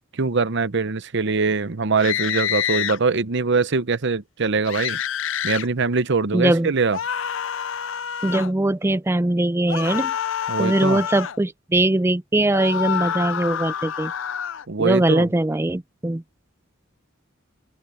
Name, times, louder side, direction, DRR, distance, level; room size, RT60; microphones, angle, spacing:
voice 1, 0.1-5.0 5.4-7.0 10.5-11.0 14.7-15.3, right 4 dB, 60° right, 0.8 m, -22 dB
sound 1, 2.0-3.0 4.7-5.7 6.9-8.5 9.7-11.4 12.5-14.6, left 9 dB, 65° left, 0.5 m, -27 dB
voice 2, 6.3-6.7 8.2-10.1 10.6-14.1 14.8-16.2, right 1 dB, 10° right, 0.4 m, -21 dB
open air
head